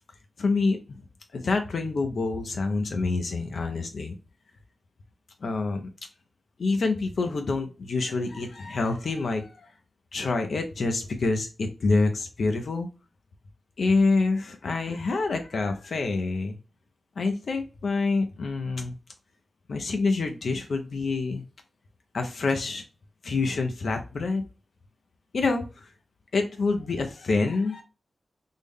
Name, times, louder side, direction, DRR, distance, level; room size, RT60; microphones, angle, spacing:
voice 1, 0.4-1.0 1.3-4.1 5.4-5.8 6.6-9.7 10.1-12.9 13.8-16.6 17.2-19.0 19.7-21.4 22.1-22.8 23.2-24.4 25.3-25.9 26.3-27.8, left 3 dB, 65° left, 5 dB, 0.5 m, -27 dB
3.5 x 2.1 x 3.5 m, 0.33 s
wide cardioid pair, 140°, 0 cm